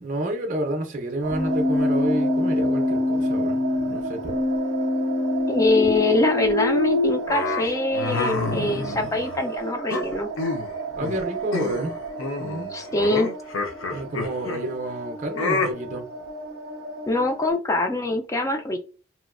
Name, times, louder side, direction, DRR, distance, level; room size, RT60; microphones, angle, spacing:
voice 1, 0.0-3.6 3.9-4.4 10.9-11.9 12.4-12.7 13.9-16.1, right 1 dB, 40° right, 0.5 m, -29 dB
sound 1, 1.2-17.5, right 5 dB, 90° right, 0.5 m, -34 dB
Keyboard (musical), 1.3-7.2, left 2 dB, 40° left, 0.7 m, -24 dB
voice 2, 5.5-10.3 12.7-13.3 17.1-18.8, left 2 dB, 15° left, 0.3 m, -23 dB
sound 2, 7.3-9.4 9.9-10.7 11.0-11.2 11.5-11.9 12.2-14.6 15.4-15.7, left 3 dB, 85° left, 0.6 m, -28 dB
3.0 x 2.4 x 2.4 m
head